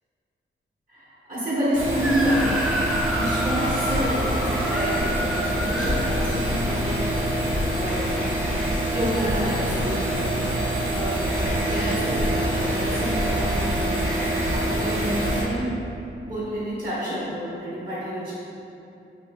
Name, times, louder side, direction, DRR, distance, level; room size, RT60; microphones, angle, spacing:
voice 1, 0.9-7.5 7.7-8.1 8.9-10.6 10.9-11.1 11.6-13.9 14.5-15.7 16.2-18.3, equal, 30° right, -13 dB, 1.3 m, -29 dB
sound 1, 1.7-15.4, right 1 dB, 85° right, 0.9 m, -25 dB
Screaming, 2.0-6.9, equal, 5° right, 0.3 m, -30 dB
3.9 x 3.1 x 2.2 m, 2.8 s
cardioid pair, 70°, 21 cm